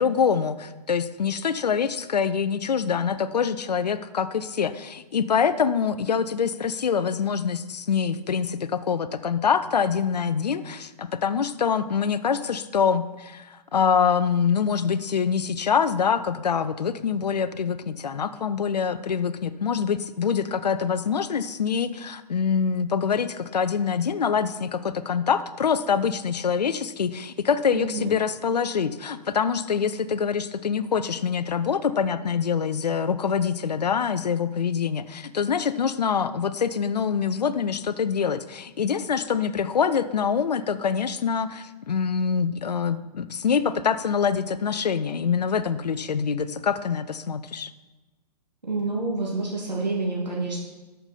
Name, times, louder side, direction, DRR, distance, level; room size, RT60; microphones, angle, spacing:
voice 1, 0.0-47.7, left 6 dB, 75° left, 13 dB, 0.7 m, -25 dB
voice 2, 27.7-28.1 48.7-50.6, right 3 dB, 85° right, -4 dB, 2.4 m, -28 dB
12.5 x 6.8 x 4.2 m, 1.2 s
figure-of-eight pair, 120°, 21 cm